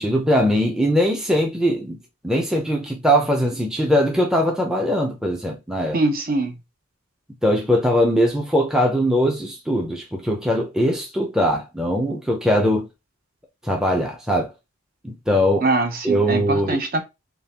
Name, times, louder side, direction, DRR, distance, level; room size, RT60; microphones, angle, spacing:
voice 1, 0.0-2.0 2.2-6.0 7.4-12.9 13.6-14.5 15.0-15.6 16.0-16.8, equal, 5° right, 0.6 m, -21 dB
voice 2, 5.9-6.6 15.6-17.0, right 2 dB, 40° right, 0.8 m, -22 dB
3.8 x 3.2 x 2.9 m
head